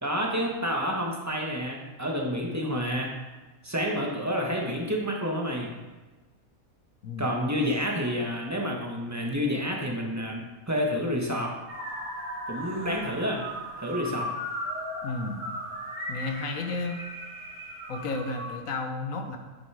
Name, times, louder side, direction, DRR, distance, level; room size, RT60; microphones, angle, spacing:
voice 1, 0.0-3.2 3.6-5.7 7.2-11.5 12.5-13.4 13.8-14.3, equal, 10° right, -1 dB, 1.2 m, -29 dB
voice 2, 7.0-7.3 15.0-15.4 16.1-17.0 17.9-19.4, left 3 dB, 65° left, 5 dB, 1.3 m, -32 dB
sound 1, 11.7-18.6, equal, 75° right, 3.0 m, -37 dB
8.9 x 6.3 x 4.8 m, 1.2 s
omnidirectional pair, 1.6 m